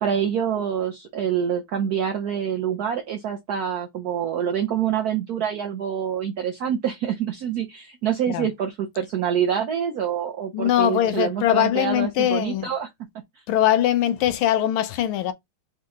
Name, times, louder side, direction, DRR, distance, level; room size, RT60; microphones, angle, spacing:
voice 1, 0.0-12.9, right 8 dB, 75° right, 0.9 m, -26 dB
voice 2, 10.5-12.7 13.5-15.3, left 11 dB, 80° left, 1.5 m, -21 dB
4.2 x 3.0 x 3.5 m
omnidirectional pair, 2.3 m